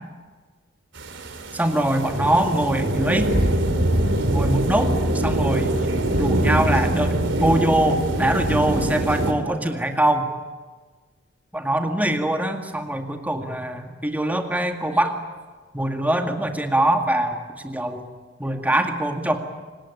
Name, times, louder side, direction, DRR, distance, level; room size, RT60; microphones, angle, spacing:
sound 1, 1.0-9.3, right 1 dB, 80° right, 3.2 m, -23 dB
voice 1, 1.5-3.6 4.3-4.9 5.2-5.9 6.2-10.3 11.5-15.1 15.7-18.1 18.4-19.4, right 1 dB, 10° right, 4 dB, 2.0 m, -23 dB
27.5 x 19.0 x 10.0 m, 1.4 s
head